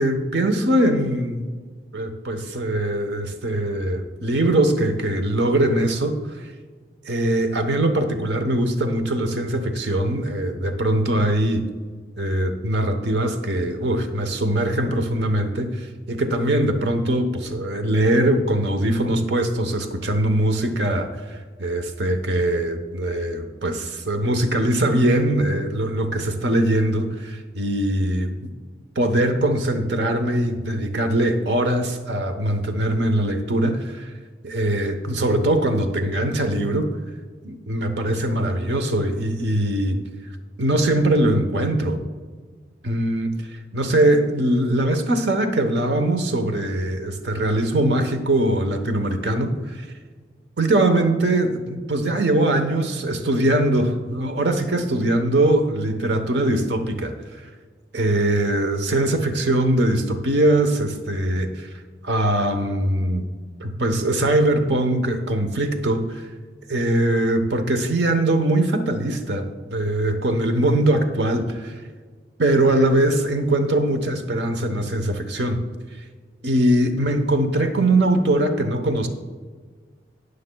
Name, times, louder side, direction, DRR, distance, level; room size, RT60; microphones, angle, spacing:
voice 1, 0.0-1.5 1.9-6.1 7.0-11.7 12.2-21.1 21.6-28.5 29.0-34.1 34.4-36.9 37.4-40.0 40.6-42.0 42.8-43.3 43.7-49.9 50.6-57.1 57.9-61.7 62.0-63.3 63.6-66.3 66.7-71.7 72.4-75.6 76.4-79.1, right 1 dB, 75° right, 7 dB, 1.0 m, -21 dB
19.5 x 6.6 x 2.3 m, 1.5 s
head